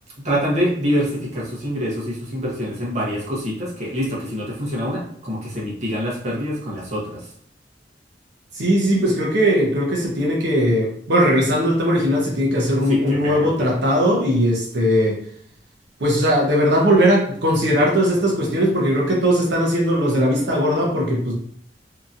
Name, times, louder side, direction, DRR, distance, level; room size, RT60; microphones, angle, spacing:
voice 1, 0.2-7.3 12.8-13.7, equal, 40° right, -5 dB, 0.9 m, -25 dB
voice 2, 8.5-15.2 16.0-21.3, equal, 75° right, -2 dB, 0.7 m, -19 dB
2.8 x 2.6 x 2.5 m, 0.63 s
head